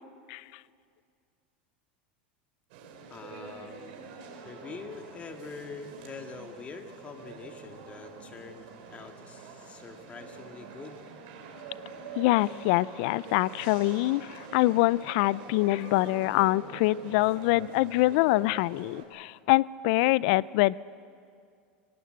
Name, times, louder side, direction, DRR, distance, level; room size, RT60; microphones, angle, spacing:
sound 1, 2.7-19.0, right 5 dB, 65° right, 3.9 m, -45 dB
voice 1, 3.1-4.0 4.5-8.6 8.9-11.1, left 4 dB, 25° left, 5 dB, 2.0 m, -44 dB
voice 2, 12.2-20.8, left 19 dB, 60° left, 22 dB, 0.4 m, -25 dB
23.5 x 17.5 x 7.7 m, 2.3 s
supercardioid pair, 130°, 6 cm